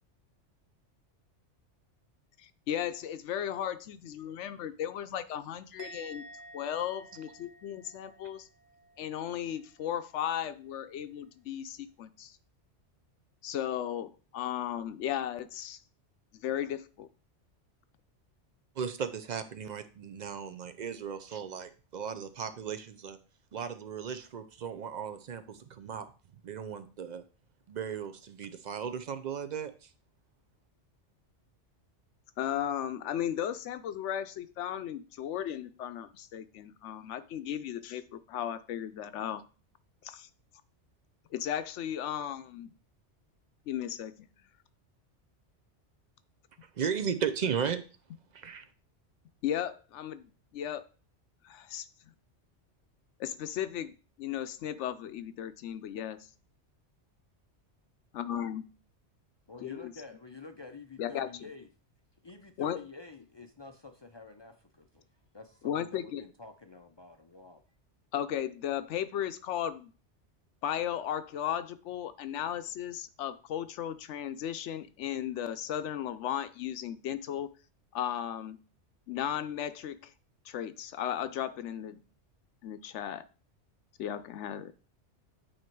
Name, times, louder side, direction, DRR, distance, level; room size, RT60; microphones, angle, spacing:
voice 1, 2.4-6.2 6.5-8.5 9.0-12.4 13.4-15.8 16.3-17.1 32.4-39.4 40.0-40.3 41.3-42.7 43.7-44.3 49.4-50.8 51.4-51.9 53.2-56.2 58.1-58.6 59.6-59.9 61.0-61.3 62.6-62.8 65.6-66.2 68.1-69.9 70.6-77.5 77.9-78.6 79.1-80.1 80.4-82.0 82.6-83.2 84.0-84.7, left 10 dB, 80° left, 12 dB, 0.9 m, -35 dB
Musical instrument, 5.8-9.2 9.4-9.9, right 1 dB, 85° right, 1.2 m, -51 dB
voice 2, 18.8-23.2 23.5-26.1 26.4-27.2 27.7-29.9 46.8-47.8 48.3-48.7, right 7 dB, 55° right, 10 dB, 0.5 m, -36 dB
voice 3, 59.5-61.7 62.2-65.0 65.3-67.6, left 4 dB, 40° left, 6 dB, 0.3 m, -49 dB
8.8 x 2.9 x 4.5 m, 0.36 s
omnidirectional pair, 1.2 m